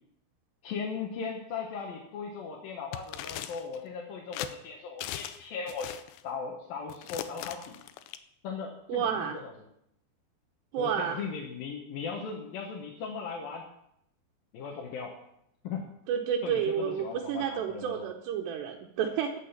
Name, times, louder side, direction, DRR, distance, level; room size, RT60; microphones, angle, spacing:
voice 1, 0.6-6.0 6.2-7.8 8.4-9.5 10.8-13.7 14.5-15.2 15.6-15.9 16.4-18.1, left 5 dB, 65° left, -1 dB, 2.8 m, -38 dB
sound 1, 2.9-3.8 4.3-4.5 5.0-5.4 5.7-6.2 6.9-8.2, left 12 dB, 90° left, 2.9 m, -39 dB
voice 2, 8.9-9.4 10.7-11.2 16.1-19.4, right 8 dB, 85° right, 0 dB, 3.1 m, -30 dB
11.5 x 8.6 x 7.1 m, 0.77 s
omnidirectional pair, 4.8 m